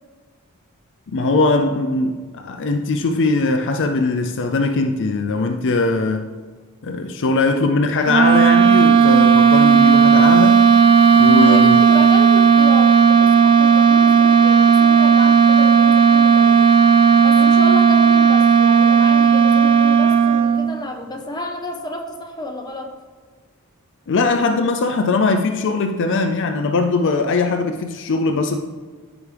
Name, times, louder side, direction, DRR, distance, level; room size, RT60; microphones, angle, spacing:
voice 1, 1.1-6.3 6.8-10.7 11.2-11.8 24.1-28.6, left 3 dB, 55° left, 6 dB, 0.5 m, -20 dB
sound 1, 8.1-20.8, right 6 dB, 25° right, 0.5 m, -13 dB
voice 2, 11.4-16.6 17.2-23.0, left 1 dB, 20° left, 2 dB, 1.0 m, -31 dB
14.0 x 4.9 x 3.4 m, 1.5 s
head